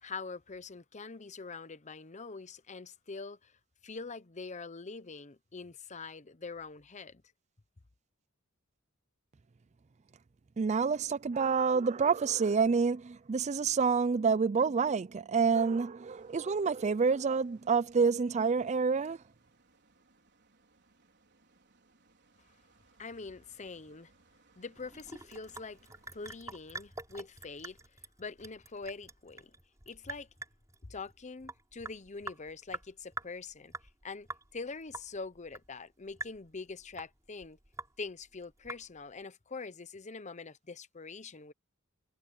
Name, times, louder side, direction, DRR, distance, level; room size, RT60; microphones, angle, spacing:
voice 1, 0.0-3.5 3.8-7.2 23.0-24.1 24.6-25.8 26.1-29.5 29.9-30.3 30.8-33.7 34.0-37.6 38.0-41.5, left 4 dB, 35° left, 0.9 m, -44 dB
voice 2, 10.6-19.2, right 5 dB, 35° right, 0.4 m, -28 dB
sound 1, 16.1-26.4, right 3 dB, 55° right, 4.6 m, -67 dB
Sink (filling or washing) / Drip, 24.8-39.2, right 2 dB, 15° right, 4.1 m, -47 dB
head